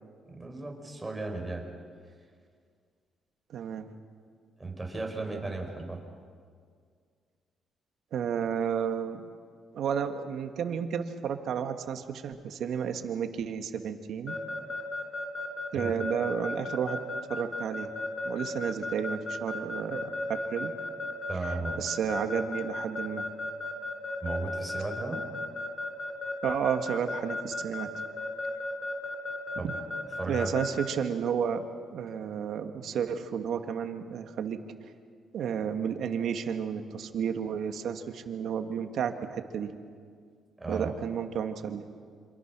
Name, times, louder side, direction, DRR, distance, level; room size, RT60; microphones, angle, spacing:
voice 1, 0.3-1.6 4.6-6.0 15.7-15.9 21.3-21.8 24.2-25.2 29.6-29.7 30.2-30.6 40.6-40.9, right 3 dB, 15° right, 1 dB, 5.5 m, -35 dB
voice 2, 3.5-3.9 8.1-9.2 9.7-14.4 15.7-17.0 17.3-17.9 18.2-20.7 21.4-23.3 26.4-27.9 29.6-29.8 30.3-31.7 31.9-34.6 35.3-39.7 40.7-41.9, right 7 dB, 70° right, 6 dB, 1.9 m, -32 dB
Keyboard (musical) / Alarm, 14.3-30.9, left 2 dB, 35° left, 5.1 m, -34 dB
27.0 x 26.0 x 6.2 m, 2.1 s
cardioid pair, 90°, 0 cm